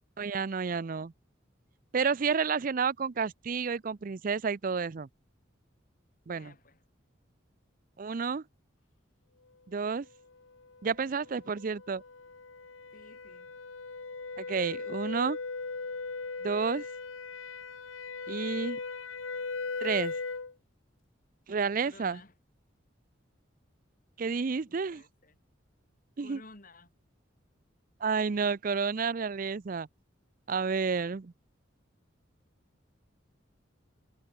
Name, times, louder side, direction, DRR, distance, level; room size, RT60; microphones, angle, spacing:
voice 1, 0.2-1.1 1.9-5.1 6.3-6.5 8.0-8.4 9.7-10.1 10.8-12.0 14.4-15.4 16.4-16.9 18.3-18.8 19.8-20.2 21.5-22.2 24.2-25.0 26.2-26.4 28.0-29.9 30.5-31.3, right 5 dB, 45° right, 0.5 m, -30 dB
voice 2, 6.3-6.8 12.9-13.5 21.8-22.3 24.7-25.4 26.2-26.9, left 2 dB, 45° left, 2.9 m, -54 dB
sound 1, 10.6-20.5, left 4 dB, 85° left, 1.3 m, -39 dB
head